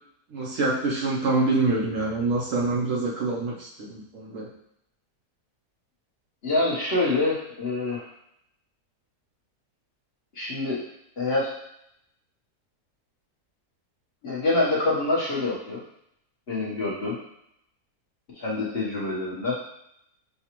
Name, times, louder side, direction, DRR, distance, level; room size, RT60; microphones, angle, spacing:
voice 1, 0.3-4.5, right 3 dB, 60° right, -3 dB, 1.0 m, -26 dB
voice 2, 6.4-8.0 10.3-10.8 11.2-11.5 14.2-15.8 16.5-17.2 18.3-19.6, left 2 dB, 45° left, -6 dB, 1.2 m, -26 dB
6.6 x 2.3 x 2.9 m, 0.77 s
omnidirectional pair, 1.7 m